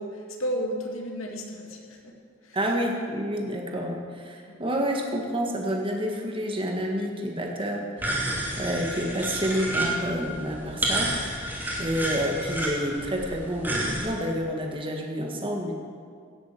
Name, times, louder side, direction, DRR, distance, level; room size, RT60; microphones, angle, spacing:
voice 1, 0.0-2.6 4.5-4.7 8.3-8.5, equal, 85° left, 1 dB, 2.2 m, -34 dB
voice 2, 2.5-8.1 8.6-11.2 11.8-15.7, equal, 25° right, 1 dB, 1.8 m, -29 dB
sound 1, 8.0-14.0, right 1 dB, 10° right, 2.7 m, -30 dB
17.5 x 7.8 x 7.6 m, 2.2 s
head